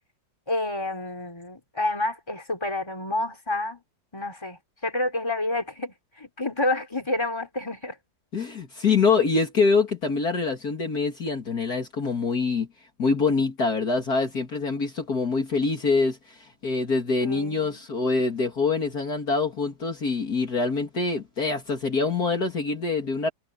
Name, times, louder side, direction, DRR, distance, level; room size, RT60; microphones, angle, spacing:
voice 1, 0.5-3.8 4.1-8.0 17.2-17.8, left 2 dB, 15° left, 3.7 m, -29 dB
voice 2, 8.3-12.7 13.0-23.3, left 4 dB, 55° left, 3.0 m, -25 dB
omnidirectional pair, 2.0 m